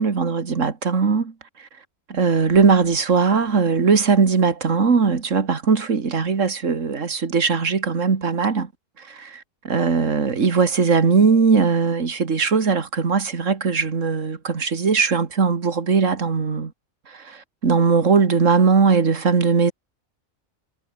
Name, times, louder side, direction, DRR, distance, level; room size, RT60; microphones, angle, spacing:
voice 1, 0.0-1.3 1.6-1.7 2.1-8.7 9.0-16.7 17.1-19.7, right 5 dB, 65° right, 2.4 m, -19 dB
omnidirectional pair, 1.4 m